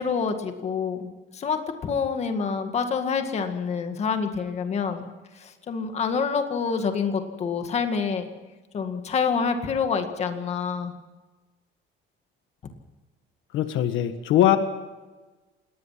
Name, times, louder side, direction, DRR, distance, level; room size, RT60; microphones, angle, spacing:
voice 1, 0.0-5.1 5.3-8.3 8.7-11.0, left 5 dB, 30° left, 6 dB, 1.9 m, -27 dB
voice 2, 13.5-14.6, left 12 dB, 70° left, 9 dB, 1.6 m, -21 dB
28.0 x 19.5 x 5.9 m, 1.2 s
cardioid pair, 180°, 21 cm